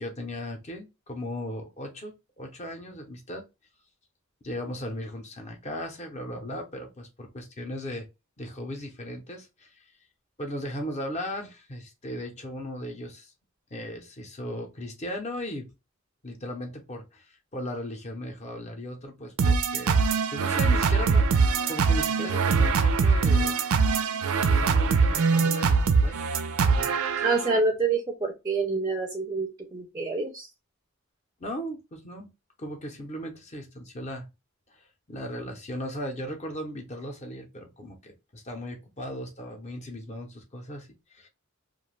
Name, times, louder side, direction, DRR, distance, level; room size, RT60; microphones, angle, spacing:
voice 1, 0.0-3.5 4.4-8.1 8.4-9.9 10.4-13.3 13.7-15.7 16.2-20.0 20.3-23.5 24.4-26.2 26.7-27.4 31.4-32.3 32.6-34.3 34.7-41.3, equal, 30° left, 0.5 m, -37 dB
sound 1, 19.4-27.6, right 5 dB, 80° right, 0.4 m, -23 dB
voice 2, 27.2-30.5, right 3 dB, 15° right, 0.4 m, -27 dB
2.4 x 2.2 x 3.1 m
head